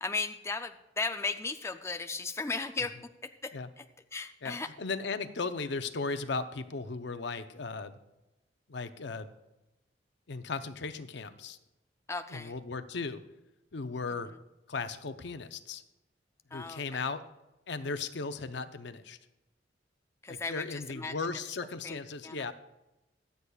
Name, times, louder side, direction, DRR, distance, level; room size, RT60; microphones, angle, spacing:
voice 1, 0.0-3.8 4.1-4.7 12.1-12.5 16.5-17.0 20.2-20.7 20.9-21.1 21.8-22.0 22.2-22.5, left 3 dB, 15° left, 8 dB, 0.4 m, -36 dB
voice 2, 4.4-8.0 8.7-9.3 10.3-11.6 12.3-13.2 13.7-14.3 14.7-15.8 16.5-17.2 17.7-19.2 20.3-22.5, left 4 dB, 70° left, 11 dB, 0.7 m, -36 dB
24.0 x 8.2 x 2.3 m, 0.98 s
head